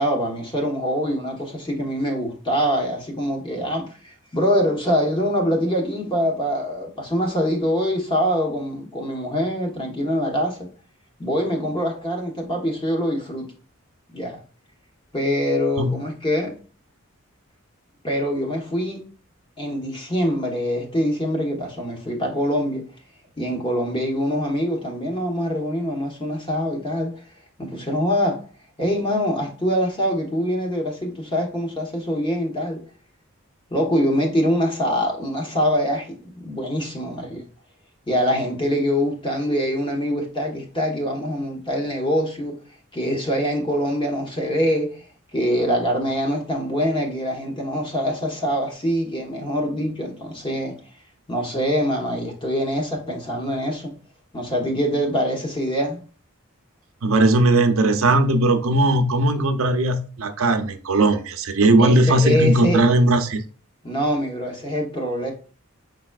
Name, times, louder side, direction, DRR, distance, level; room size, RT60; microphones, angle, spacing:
voice 1, 0.0-10.7 11.2-13.5 14.1-14.4 15.1-16.5 18.0-19.0 19.6-22.8 23.4-27.1 27.6-28.4 28.8-32.8 33.7-37.4 38.1-42.6 42.9-45.1 45.3-50.8 51.3-53.9 54.3-56.0 61.8-62.8 63.8-65.3, equal, 25° left, 1.2 m, -24 dB
voice 2, 57.0-63.4, right 2 dB, 70° right, 0.6 m, -18 dB
5.4 x 4.0 x 2.4 m
head